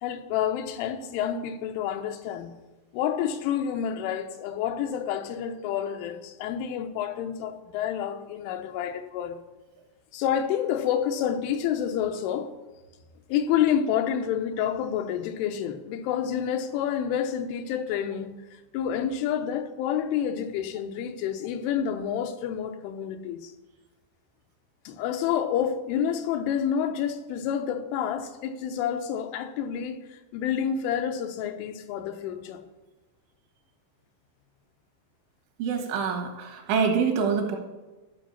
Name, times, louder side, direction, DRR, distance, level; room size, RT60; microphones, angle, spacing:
voice 1, 0.0-2.6 2.9-9.4 10.1-12.5 13.3-23.5 24.9-32.6, left 9 dB, 90° left, 3.3 m, -29 dB
voice 2, 35.6-37.6, right 6 dB, 80° right, 3.9 m, -25 dB
12.5 x 5.4 x 5.7 m
omnidirectional pair, 5.4 m